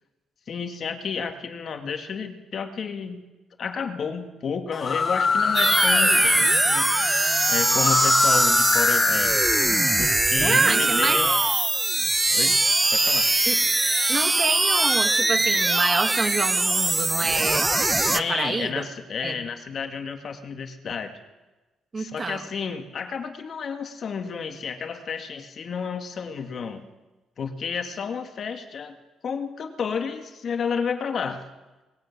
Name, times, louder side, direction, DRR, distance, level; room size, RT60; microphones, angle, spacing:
voice 1, 0.5-3.2 3.6-6.9 7.5-9.3 10.0-11.3 12.3-12.6 12.9-13.3 18.1-21.1 22.0-26.8 27.4-28.9 29.2-31.4, left 6 dB, 55° left, 6 dB, 2.3 m, -31 dB
sound 1, 4.7-10.5, left 5 dB, 40° left, 0.6 m, -25 dB
sound 2, 5.5-18.2, right 2 dB, 15° right, 1.0 m, -22 dB
voice 2, 10.4-11.2 13.5-13.6 14.1-17.7 18.1-18.8 19.2-19.4 21.9-22.4, right 3 dB, 35° right, 7 dB, 2.4 m, -27 dB
19.5 x 17.5 x 8.6 m, 1.1 s
cardioid pair, 90°, 0 cm